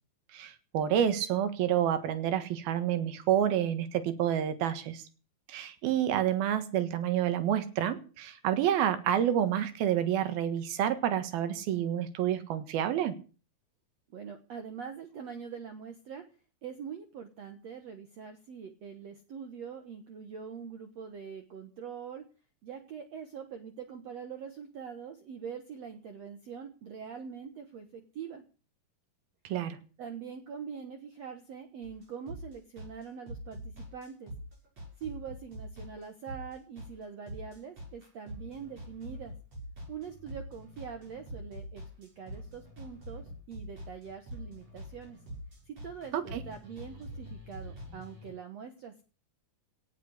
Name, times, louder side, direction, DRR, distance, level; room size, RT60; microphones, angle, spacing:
voice 1, 0.3-5.0 5.5-13.2 29.4-29.8 46.1-46.4, right 10 dB, 75° right, 11 dB, 3.3 m, -29 dB
voice 2, 14.1-16.2 16.6-22.3 22.6-28.4 30.0-34.3 35.0-39.3 39.9-45.2 45.7-49.0, right 7 dB, 60° right, 7 dB, 1.9 m, -43 dB
sound 1, 31.8-48.3, equal, 40° right, 8.3 m, -45 dB
17.5 x 7.6 x 8.2 m, 0.38 s
omnidirectional pair, 4.4 m